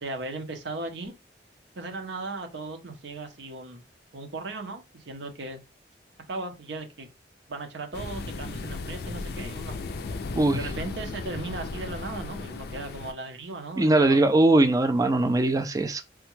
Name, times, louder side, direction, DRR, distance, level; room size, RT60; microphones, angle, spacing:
voice 1, 0.0-1.2 1.8-3.8 4.1-5.6 6.3-7.1 7.5-9.8 10.6-14.3, right 3 dB, 70° right, 0.7 m, -37 dB
sound 1, 7.9-13.1, left 3 dB, 55° left, 0.3 m, -35 dB
voice 2, 10.3-10.7 13.8-16.0, right 2 dB, 20° right, 0.3 m, -21 dB
3.4 x 2.2 x 3.0 m
head